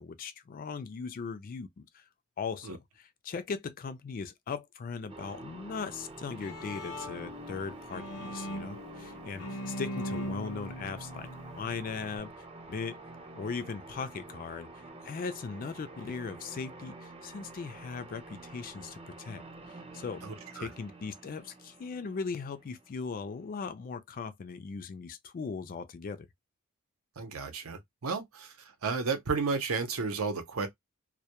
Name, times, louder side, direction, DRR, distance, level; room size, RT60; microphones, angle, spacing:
voice 1, 0.0-2.1 2.4-11.3 11.6-12.3 12.7-13.0 13.3-20.2 20.5-26.3, left 5 dB, 40° left, 0.3 m, -39 dB
sound 1, 5.1-23.4, right 2 dB, 25° right, 0.5 m, -48 dB
Bowed string instrument, 6.1-12.2, equal, 85° left, 0.7 m, -40 dB
voice 2, 20.2-20.7 27.2-28.5 28.8-30.7, right 4 dB, 70° right, 0.6 m, -32 dB
2.1 x 2.1 x 2.8 m
head